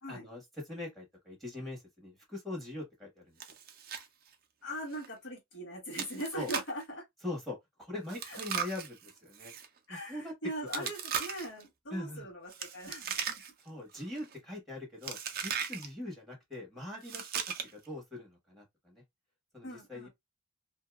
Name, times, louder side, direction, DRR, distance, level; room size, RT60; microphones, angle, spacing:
voice 1, 0.1-3.4 6.3-6.5 7.2-9.5 9.9-10.3 10.7-10.9 11.9-12.3 13.6-17.3 17.6-19.0 19.5-20.1, left 1 dB, ahead, 1.3 m, -42 dB
Chewing mastication, 3.4-4.1 4.3-4.4 4.9-5.1 5.9-6.8 8.1-9.7 10.7-11.6 12.5-13.7 14.0-14.3 15.0-15.9 17.0-17.9, right 7 dB, 45° right, 0.5 m, -37 dB
voice 2, 4.6-7.0 8.2-8.4 9.9-13.5 19.6-20.1, equal, 65° left, 1.6 m, -41 dB
2.8 x 2.7 x 2.3 m
head